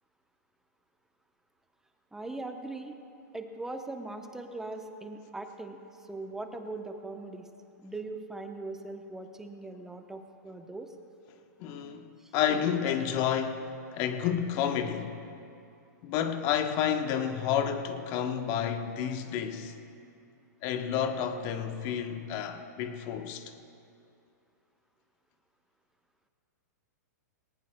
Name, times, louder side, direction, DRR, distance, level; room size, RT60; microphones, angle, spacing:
voice 1, 2.1-3.0 3.3-7.5 7.8-10.9 12.2-12.3, right 2 dB, 5° right, 0.8 m, -40 dB
voice 2, 11.6-12.1 12.3-13.6 13.9-15.2 16.0-19.8 20.6-23.5, left 8 dB, 40° left, 1.0 m, -30 dB
19.5 x 19.0 x 2.2 m
hypercardioid pair, 135°, 10 cm